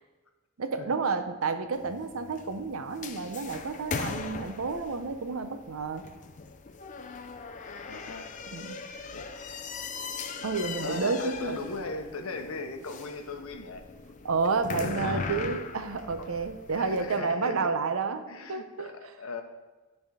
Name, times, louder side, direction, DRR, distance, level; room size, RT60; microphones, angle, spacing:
voice 1, 0.6-6.1 8.5-8.8 10.4-11.6 14.2-18.2 18.5-18.9, right 4 dB, 75° right, 8 dB, 0.6 m, -30 dB
sound 1, 1.7-17.1, left 4 dB, 35° left, 0.4 m, -39 dB
voice 2, 7.9-8.3 9.1-9.3 10.8-13.8 15.0-15.3 16.2-16.3 16.7-17.7 18.3-19.4, left 3 dB, 80° left, 6 dB, 0.8 m, -38 dB
10.5 x 3.5 x 4.9 m, 1.2 s
head